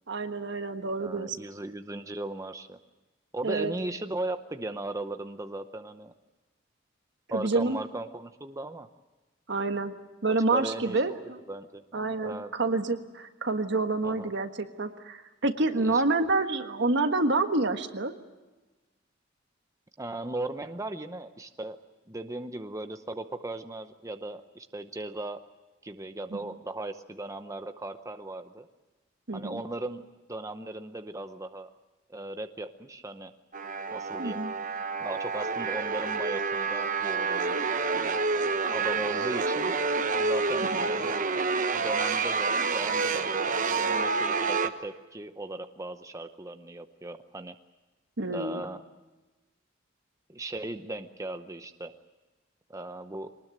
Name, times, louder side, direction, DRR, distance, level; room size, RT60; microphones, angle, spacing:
voice 1, 0.1-1.4 3.4-3.7 7.3-7.8 9.5-9.9 10.2-11.1 11.9-18.1 26.3-26.5 29.3-29.6 34.2-34.5 40.7-40.9 48.2-48.6, right 3 dB, 65° right, 7 dB, 1.5 m, -28 dB
voice 2, 1.0-2.8 3.3-6.1 7.3-8.9 10.5-12.5 14.0-14.3 15.8-16.0 20.0-21.8 22.1-25.4 25.8-28.7 29.3-31.7 32.1-33.3 33.9-34.5 35.0-37.6 37.9-38.2 38.7-39.7 40.2-41.3 41.7-47.6 48.3-48.8 50.3-51.9 52.7-53.3, right 2 dB, 15° right, 8 dB, 0.8 m, -37 dB
sound 1, 33.5-44.7, right 4 dB, 45° right, 1.1 m, -28 dB
23.0 x 19.5 x 9.1 m, 1.2 s
head